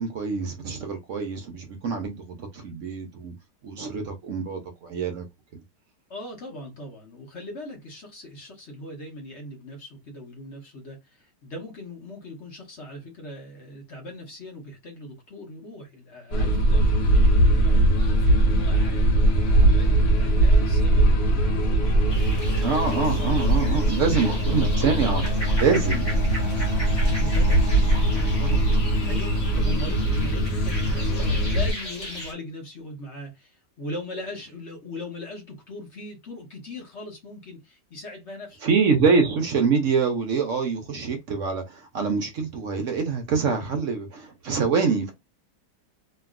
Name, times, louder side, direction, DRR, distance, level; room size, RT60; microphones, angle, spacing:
voice 1, 0.0-3.3 3.6-5.2 5.5-5.6 22.6-26.1 38.6-45.1, right 5 dB, 65° right, 0.7 m, -25 dB
voice 2, 6.1-19.1 19.5-22.6 22.9-23.4 24.0-24.4 26.4-38.6, left 1 dB, 45° left, 1.1 m, -40 dB
sound 1, 16.3-31.7, right 1 dB, 70° left, 1.5 m, -21 dB
sound 2, 22.1-32.3, equal, 25° left, 0.9 m, -37 dB
2.9 x 2.6 x 2.4 m
omnidirectional pair, 1.9 m